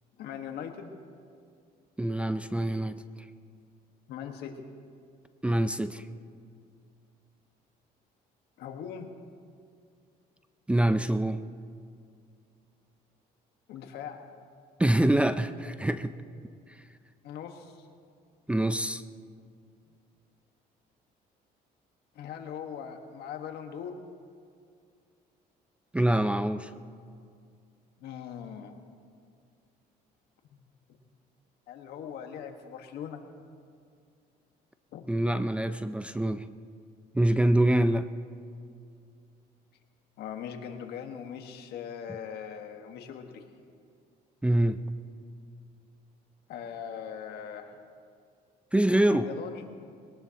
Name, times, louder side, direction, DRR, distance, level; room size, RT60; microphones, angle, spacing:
voice 1, 0.2-0.9 4.1-4.6 8.6-9.1 13.7-14.2 17.2-17.7 22.1-23.9 28.0-28.7 31.7-33.2 34.9-35.0 40.2-43.4 46.5-47.8 49.1-49.6, left 8 dB, 75° left, 5 dB, 1.5 m, -40 dB
voice 2, 2.0-3.0 5.4-6.1 10.7-11.4 14.8-16.1 18.5-19.0 25.9-26.7 35.1-36.4 37.1-38.1 44.4-44.8 48.7-49.3, right 1 dB, 5° right, 11 dB, 0.4 m, -25 dB
21.5 x 19.0 x 2.9 m, 2.3 s
cardioid pair, 110°, 17 cm